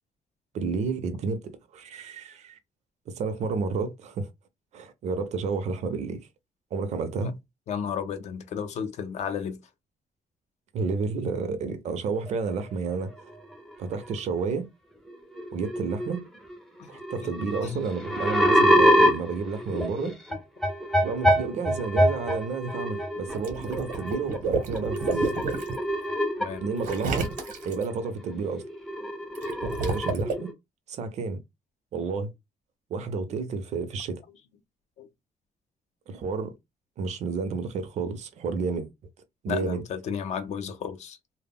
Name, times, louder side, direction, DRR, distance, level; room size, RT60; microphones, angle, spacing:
voice 1, 0.5-2.6 3.1-4.3 4.7-6.3 6.7-7.4 10.7-13.1 13.8-14.7 15.5-16.2 16.9-20.2 21.0-25.4 26.6-27.3 27.6-28.6 29.6-30.5 30.9-31.4 31.9-32.3 32.9-34.2 36.1-36.5 37.0-38.9 39.4-39.8, right 4 dB, 60° right, 0.5 m, -31 dB
voice 2, 7.7-9.6 16.8-16.9 17.2-17.3 17.6-17.8 19.7-20.1 26.4-26.6 35.0-35.1 39.5-41.2, left 7 dB, 60° left, 0.4 m, -33 dB
sound 1, 12.3-12.5 13.2-13.5 13.9-14.1 15.1-15.2 15.4-16.2 16.5-16.6 17.0-28.1 28.3-30.5, equal, 5° left, 0.4 m, -26 dB
Water / Liquid, 23.3-25.8 26.8-27.9 29.3-30.3, right 4 dB, 80° right, 0.8 m, -30 dB
2.1 x 2.1 x 3.4 m
cardioid pair, 175°, 13 cm